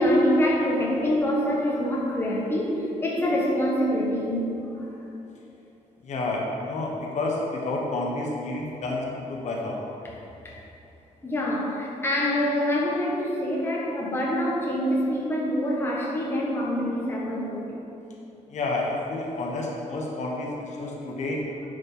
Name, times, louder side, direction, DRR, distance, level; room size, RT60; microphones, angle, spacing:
voice 1, 0.0-4.5 4.7-4.9 10.4-10.5 11.2-17.7 21.0-21.1, equal, 15° left, -4 dB, 1.4 m, -25 dB
voice 2, 6.0-9.8 18.5-21.4, left 2 dB, 60° left, -1 dB, 1.3 m, -30 dB
9.8 x 5.3 x 5.6 m, 2.8 s
wide cardioid pair, 165°, 13 cm